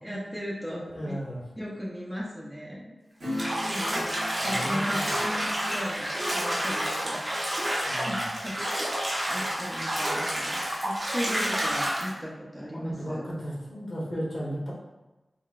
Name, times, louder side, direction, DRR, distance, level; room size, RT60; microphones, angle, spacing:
voice 1, 0.0-1.2 1.6-2.9 3.3-7.2 8.1-13.2, equal, 5° right, -5 dB, 0.5 m, -37 dB
voice 2, 0.7-1.4 4.4-5.1 7.9-8.2 12.7-14.7, equal, 50° left, -6 dB, 0.9 m, -35 dB
Acoustic guitar / Strum, 3.2-9.4 9.8-9.9, left 1 dB, 80° right, 1.1 m, -41 dB
Bathtub (filling or washing), 3.3-12.1, equal, 40° right, 0.8 m, -29 dB
3.8 x 2.2 x 2.3 m, 1.1 s
wide cardioid pair, 90°, 0 cm